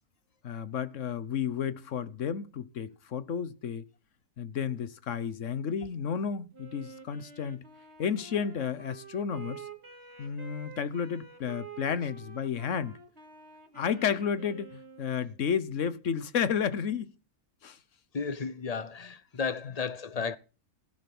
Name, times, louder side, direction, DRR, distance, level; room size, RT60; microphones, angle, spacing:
voice 1, 0.4-3.9 4.4-7.6 8.0-9.6 10.2-12.9 13.7-17.1 17.6-17.8, left 7 dB, 60° left, 1.3 m, -32 dB
Wind instrument woodwind instrument, 6.5-15.4, right 6 dB, 45° right, 2.6 m, -48 dB
voice 2, 18.1-20.4, left 5 dB, 35° left, 0.6 m, -33 dB
16.5 x 10.0 x 6.1 m
omnidirectional pair, 1.5 m